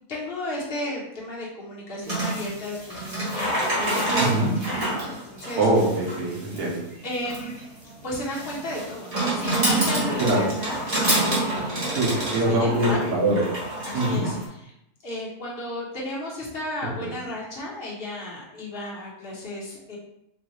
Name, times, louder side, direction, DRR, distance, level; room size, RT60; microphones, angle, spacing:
voice 1, 0.1-5.7 7.0-7.7 8.0-10.8 11.2-12.0 12.3-13.2 13.8-14.7 15.0-20.0, left 1 dB, 40° left, -5 dB, 1.2 m, -34 dB
sound 1, 2.0-14.5, right 1 dB, 25° right, 1.0 m, -27 dB
voice 2, 4.2-4.5 5.6-6.8 10.2-10.5 12.0-13.4 13.9-14.2, right 1 dB, 85° right, -3 dB, 1.5 m, -23 dB
4.4 x 2.4 x 3.0 m, 0.82 s
omnidirectional pair, 1.6 m